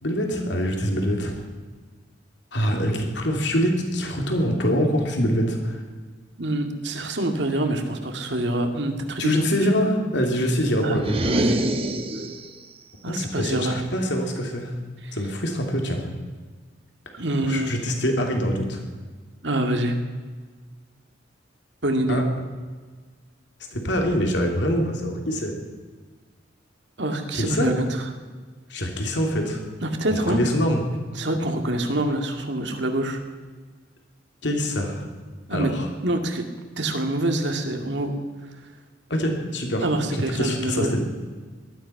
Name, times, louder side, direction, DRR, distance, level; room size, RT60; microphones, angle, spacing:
voice 1, 0.0-1.3 2.5-5.8 9.2-11.2 13.1-14.7 15.1-16.0 17.5-18.8 22.1-22.2 23.7-25.5 27.3-27.7 28.7-29.6 30.1-30.8 34.4-35.0 35.5-35.9 39.1-39.9 40.1-41.0, equal, 70° left, 2 dB, 3.1 m, -24 dB
voice 2, 6.4-9.6 10.8-11.6 13.0-13.8 15.0-15.2 17.1-17.8 19.4-20.0 21.8-22.2 27.0-28.0 29.8-30.4 31.2-33.2 35.5-35.7 36.0-36.4 36.8-38.1 39.8-40.9, right 1 dB, 70° right, 5 dB, 2.2 m, -25 dB
sound 1, 10.9-12.6, right 1 dB, 30° right, 1.2 m, -25 dB
18.5 x 13.0 x 5.9 m, 1.4 s
head